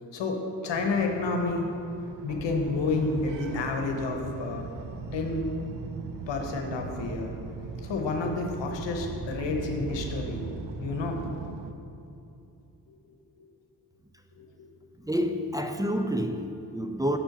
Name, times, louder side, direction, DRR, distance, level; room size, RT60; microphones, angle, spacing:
voice 1, 0.1-1.7 2.2-4.6 5.1-5.4 6.3-7.3 7.8-10.5 10.8-11.2 12.9-13.0 13.4-13.5 14.4-14.7, left 3 dB, 85° left, 2 dB, 0.9 m, -30 dB
sound 1, 0.7-11.7, right 4 dB, 75° right, 0.6 m, -39 dB
voice 2, 15.0-17.2, equal, 10° right, 5 dB, 0.5 m, -28 dB
7.1 x 4.5 x 5.9 m, 2.7 s
supercardioid pair, 40°, 43 cm